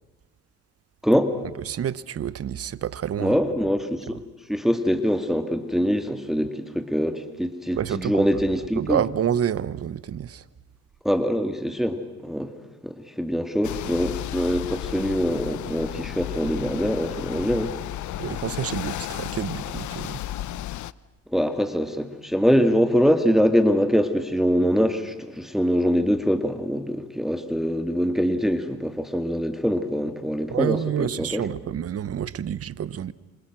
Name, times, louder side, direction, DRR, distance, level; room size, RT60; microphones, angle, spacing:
voice 1, 1.0-1.3 3.2-4.2 4.5-9.0 11.0-12.5 12.8-17.7 21.3-31.5, equal, ahead, 2.2 m, -23 dB
voice 2, 1.7-3.4 7.7-8.2 8.8-10.4 18.2-20.2 30.5-33.1, right 9 dB, 50° right, 1.1 m, -28 dB
sound 1, 13.6-20.9, left 13 dB, 70° left, 0.8 m, -33 dB
29.0 x 26.0 x 6.2 m
cardioid pair, 90°, 30 cm